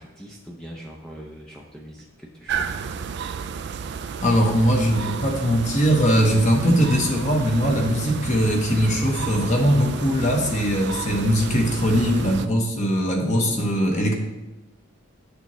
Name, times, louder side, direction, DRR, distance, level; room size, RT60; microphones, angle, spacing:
voice 1, 0.0-2.7, equal, 5° left, -1 dB, 0.6 m, -42 dB
sound 1, 2.5-12.5, right 6 dB, 55° right, 0.4 m, -32 dB
voice 2, 4.2-14.1, equal, 35° left, 1 dB, 1.0 m, -20 dB
9.1 x 6.7 x 3.1 m, 1.0 s
head